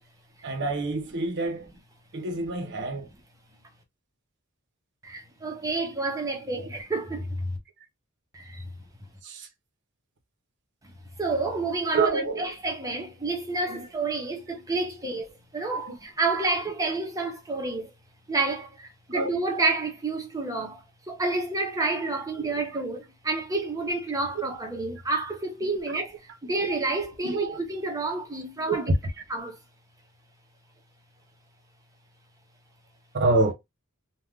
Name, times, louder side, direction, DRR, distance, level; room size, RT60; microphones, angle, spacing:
voice 1, 0.4-1.7 2.1-3.1 9.2-9.5 11.9-12.5 13.7-13.9 15.0-15.1 15.8-16.0 19.1-19.3 22.4-22.6 27.2-27.6 28.7-28.8 33.1-33.5, right 3 dB, 50° right, 0.7 m, -27 dB
voice 2, 5.0-7.6 8.3-8.6 10.8-15.3 15.5-17.9 18.3-28.9 29.3-29.6, right 3 dB, 15° right, 0.7 m, -29 dB
3.4 x 2.2 x 2.3 m
head